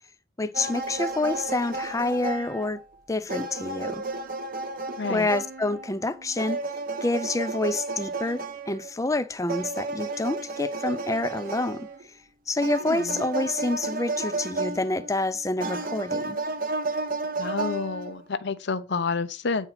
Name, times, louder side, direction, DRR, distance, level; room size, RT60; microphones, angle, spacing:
voice 1, 0.4-2.8 3.1-4.0 5.1-6.6 7.0-11.9 12.5-16.4, left 2 dB, 15° left, 0.5 m, -28 dB
sound 1, 0.5-3.0 3.3-8.9 9.5-12.0 12.6-15.2 15.6-18.2, right 3 dB, 45° right, 0.8 m, -32 dB
voice 2, 5.0-5.3 12.8-13.2 17.4-19.7, left 4 dB, 55° left, 0.6 m, -29 dB
9.1 x 4.4 x 5.8 m
head